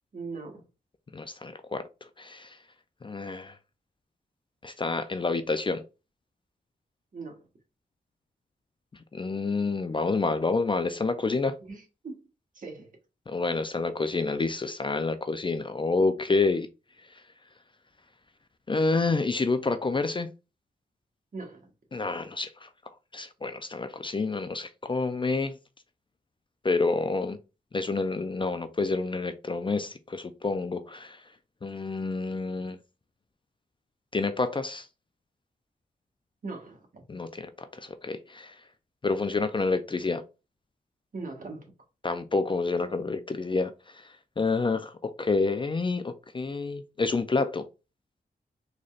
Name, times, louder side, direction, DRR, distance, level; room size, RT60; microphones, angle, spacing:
voice 1, 0.1-0.7 7.1-7.5 11.6-12.2 12.5-12.9 21.3-21.7 36.4-37.0 41.1-41.7, right 3 dB, 50° right, 1.4 m, -40 dB
voice 2, 1.1-1.8 2.2-2.6 3.0-3.6 4.6-5.8 9.1-11.5 13.3-16.7 18.7-20.3 21.9-22.7 23.1-25.6 26.6-27.4 27.7-31.2 31.6-32.8 34.1-34.9 37.1-38.6 39.0-40.2 42.0-47.7, left 3 dB, 30° left, 0.4 m, -28 dB
4.0 x 3.2 x 2.4 m
cardioid pair, 65°, 18 cm